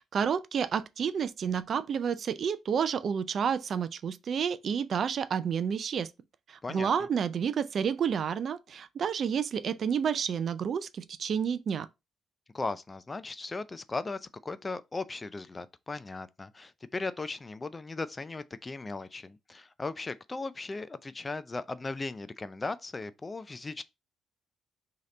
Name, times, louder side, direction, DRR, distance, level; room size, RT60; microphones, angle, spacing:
voice 1, 0.1-6.1 6.5-11.9, right 7 dB, 55° right, 0.3 m, -30 dB
voice 2, 12.5-23.8, left 3 dB, 25° left, 0.3 m, -37 dB
3.1 x 2.8 x 3.8 m
cardioid pair, 90°, 0 cm